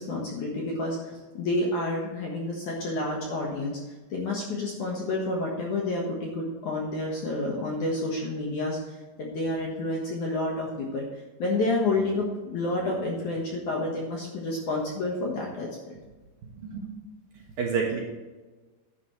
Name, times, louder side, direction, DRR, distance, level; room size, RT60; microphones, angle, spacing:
voice 1, 0.0-3.8 4.1-8.8 9.2-11.1 11.4-15.9, left 2 dB, 70° left, -2 dB, 1.8 m, -29 dB
voice 2, 16.4-16.9 17.3-18.0, right 5 dB, 65° right, -2 dB, 2.6 m, -30 dB
11.0 x 10.5 x 3.2 m, 1.2 s
omnidirectional pair, 5.9 m